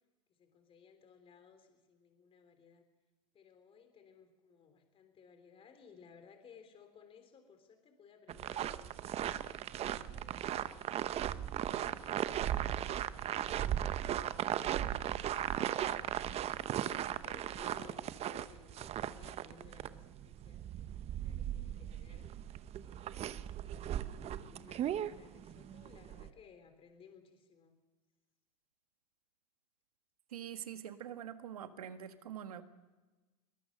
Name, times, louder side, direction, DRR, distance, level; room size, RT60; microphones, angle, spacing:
voice 1, 0.4-2.8 3.3-9.4 10.1-14.0 15.0-16.1 16.7-22.2 22.8-27.7, left 6 dB, 30° left, 7 dB, 3.5 m, -60 dB
sound 1, 8.3-26.3, right 11 dB, 35° right, 0.9 m, -37 dB
voice 2, 30.3-32.6, right 9 dB, 85° right, 9 dB, 1.6 m, -45 dB
22.0 x 19.5 x 6.5 m, 1.2 s
hypercardioid pair, 100°, 19 cm